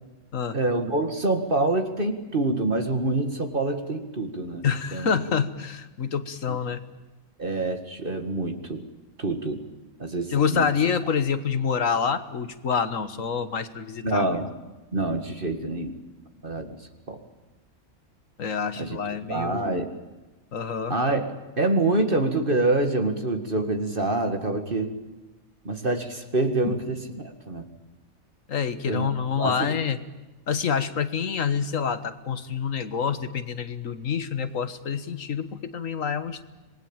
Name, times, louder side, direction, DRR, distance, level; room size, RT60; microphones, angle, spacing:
voice 1, 0.5-5.2 6.5-6.6 7.4-8.8 9.2-9.6 10.0-10.7 14.0-14.5 14.9-15.9 16.4-16.8 17.1-17.2 18.8-19.0 19.3-19.9 20.9-24.9 25.7-27.7 28.9-29.1 29.4-29.8, right 2 dB, 40° right, 6 dB, 2.1 m, -26 dB
voice 2, 4.6-6.8 10.3-14.3 18.4-19.7 20.5-20.9 26.7-26.8 28.5-30.0 30.5-36.4, left 6 dB, 75° left, 12 dB, 1.8 m, -27 dB
26.5 x 20.5 x 8.9 m, 1.1 s
omnidirectional pair, 1.4 m